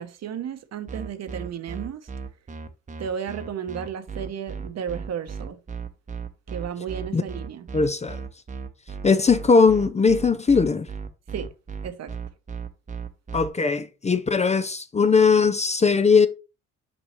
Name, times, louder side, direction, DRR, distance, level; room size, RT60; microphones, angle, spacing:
voice 1, 0.0-2.0 3.0-5.6 6.5-7.7 11.3-11.5 11.8-12.1, right 8 dB, 60° right, 0.9 m, -33 dB
sound 1, 0.9-13.5, right 5 dB, 25° right, 0.8 m, -35 dB
voice 2, 7.7-8.2 9.0-10.9 13.3-16.3, left 5 dB, 20° left, 0.5 m, -19 dB
6.1 x 5.3 x 3.1 m
cardioid pair, 90°, 30 cm